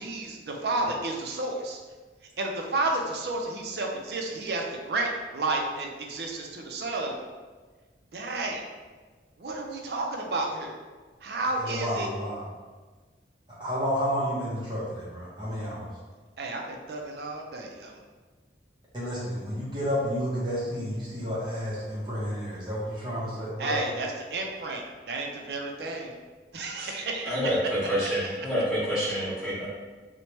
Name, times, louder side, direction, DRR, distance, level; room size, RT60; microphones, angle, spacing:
voice 1, 0.0-1.8 2.4-7.1 8.1-8.6 9.4-10.7 11.2-12.1 16.4-18.0 23.6-26.1 26.5-27.6, right 2 dB, 60° right, 1 dB, 0.4 m, -31 dB
voice 2, 11.6-12.4 13.6-15.9 18.9-23.8, equal, 25° right, -8 dB, 0.7 m, -31 dB
voice 3, 26.7-29.7, equal, ahead, -13 dB, 1.3 m, -28 dB
3.0 x 2.1 x 2.9 m, 1.4 s
head